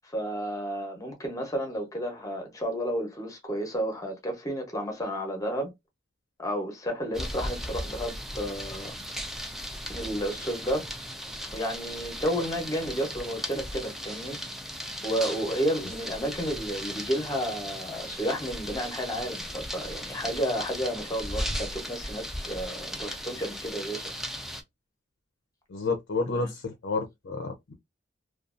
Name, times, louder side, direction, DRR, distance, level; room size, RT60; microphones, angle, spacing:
voice 1, 0.1-5.7 6.4-8.9 9.9-10.9 11.5-14.4 15.0-24.1 26.4-26.5, equal, 20° left, 0.8 m, -31 dB
sound 1, 7.1-24.6, equal, ahead, 0.4 m, -37 dB
voice 2, 25.7-27.7, left 3 dB, 70° left, 0.5 m, -30 dB
2.5 x 2.3 x 2.4 m
head